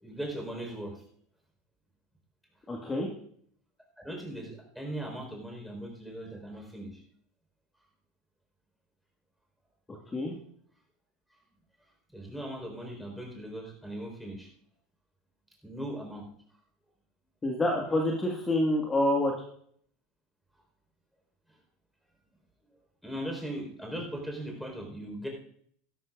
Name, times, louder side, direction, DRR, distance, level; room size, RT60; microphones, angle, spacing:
voice 1, 0.0-0.9 4.0-6.9 12.1-14.5 15.6-16.3 23.0-25.3, right 1 dB, ahead, 1 dB, 4.4 m, -39 dB
voice 2, 2.7-3.1 9.9-10.4 17.4-19.3, left 1 dB, 20° left, 0 dB, 1.8 m, -27 dB
17.0 x 12.5 x 2.5 m, 0.63 s
figure-of-eight pair, 80°, 0 cm